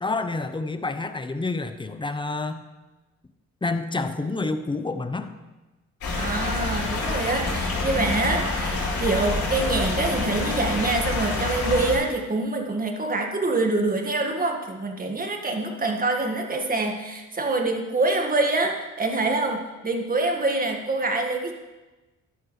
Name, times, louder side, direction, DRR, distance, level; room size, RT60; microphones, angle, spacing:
voice 1, 0.0-2.6 3.6-5.3, left 3 dB, 15° left, 9 dB, 0.9 m, -28 dB
sound 1, 6.0-12.0, left 3 dB, 70° left, 4.7 m, -27 dB
voice 2, 6.2-21.5, right 2 dB, 30° right, 3 dB, 1.9 m, -25 dB
14.0 x 11.0 x 3.3 m, 1.1 s
cardioid pair, 90°, 30 cm